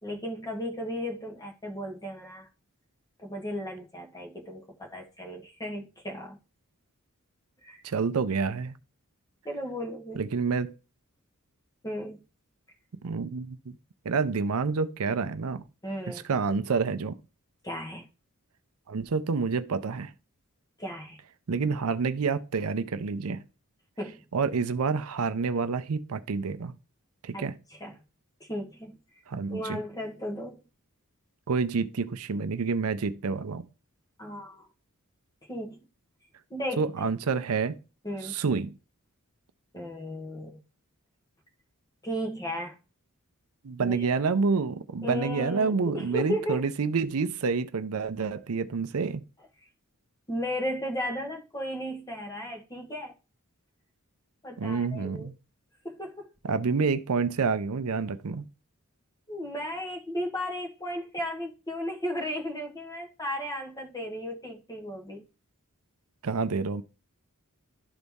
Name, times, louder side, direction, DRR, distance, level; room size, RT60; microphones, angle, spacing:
voice 1, 0.0-2.5 3.2-6.4 7.6-7.8 9.4-10.3 11.8-12.2 15.8-16.2 17.6-18.1 20.8-21.2 24.0-24.2 27.3-28.0 28.4-29.0 29.5-30.6 34.2-34.7 35.5-35.8 36.5-37.1 38.0-38.4 39.7-40.6 42.0-42.8 43.8-44.1 45.0-46.6 50.3-53.1 54.4-55.3 55.8-56.3 59.3-65.2, equal, 15° left, 1.4 m, -35 dB
voice 2, 7.8-8.8 10.2-10.7 13.0-13.8 14.0-15.6 16.3-17.2 18.9-20.1 21.5-23.4 24.3-26.7 27.2-27.6 29.3-29.8 31.5-33.7 36.8-37.8 38.2-38.7 43.6-49.2 54.6-55.3 56.4-58.4 66.2-66.8, right 5 dB, 75° right, 0.5 m, -28 dB
11.5 x 4.0 x 3.6 m
head